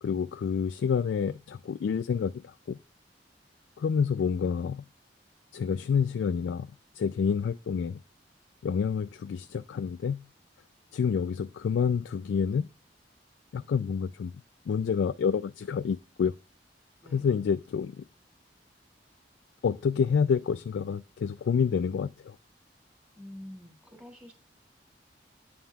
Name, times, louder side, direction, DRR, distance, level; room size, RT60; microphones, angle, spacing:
voice 1, 0.0-2.8 3.8-4.8 5.5-6.7 6.9-8.0 8.6-10.2 10.9-12.7 13.5-14.4 14.7-16.3 17.1-18.0 19.6-22.4, left 6 dB, 80° left, 0.3 m, -28 dB
voice 2, 23.1-24.3, left 1 dB, 10° right, 2.6 m, -46 dB
8.6 x 7.3 x 2.3 m
head